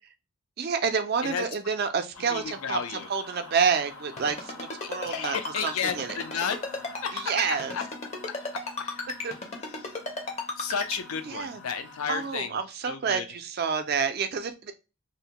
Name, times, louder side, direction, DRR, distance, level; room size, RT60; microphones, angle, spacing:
voice 1, 0.6-6.2 7.1-7.8 9.2-9.3 11.2-11.6 12.1-14.7, right 6 dB, 45° right, 0.3 m, -29 dB
sound 1, 2.1-12.4, left 3 dB, 65° left, 0.9 m, -47 dB
voice 2, 2.3-3.1 4.8-6.6 7.0-7.2 7.7-7.8 8.5-9.0 9.8-10.0 10.6-12.5 12.9-13.2, left 7 dB, 85° left, 0.5 m, -32 dB
Ringtone, 4.2-11.0, left 3 dB, 30° left, 0.5 m, -33 dB
2.6 x 2.1 x 2.8 m
head